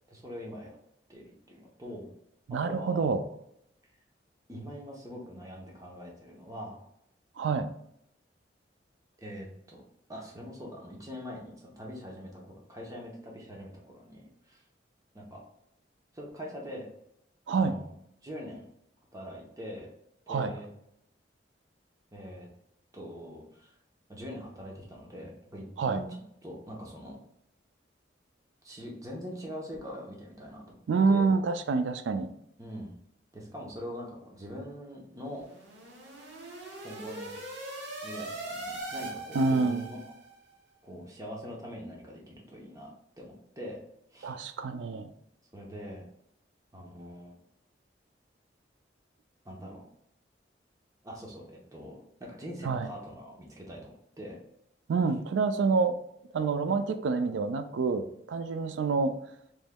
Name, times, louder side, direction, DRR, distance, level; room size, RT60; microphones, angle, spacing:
voice 1, 0.1-0.8 1.1-2.1 2.6-3.0 4.5-6.8 9.2-9.8 10.1-14.6 15.1-15.4 16.1-16.9 17.5-17.9 18.2-18.7 19.1-19.9 20.3-20.7 22.1-22.5 22.9-23.7 24.1-27.2 28.6-30.8 31.1-31.3 32.6-33.0 33.3-35.5 36.8-37.3 38.0-40.0 40.8-42.9 43.2-43.8 44.1-44.4 45.5-46.1 46.7-47.4 49.4-49.8 51.0-53.9 54.2-54.4, equal, 20° right, -2 dB, 0.8 m, -43 dB
voice 2, 2.5-3.2 7.4-7.7 17.5-17.7 20.3-20.5 25.8-26.0 30.9-32.3 39.3-39.8 44.2-45.1 52.6-52.9 54.9-56.0 56.3-59.1, right 4 dB, 90° right, 9 dB, 0.4 m, -27 dB
sound 1, 35.3-40.3, right 2 dB, 75° right, 0.8 m, -40 dB
3.5 x 3.1 x 2.2 m, 0.77 s
head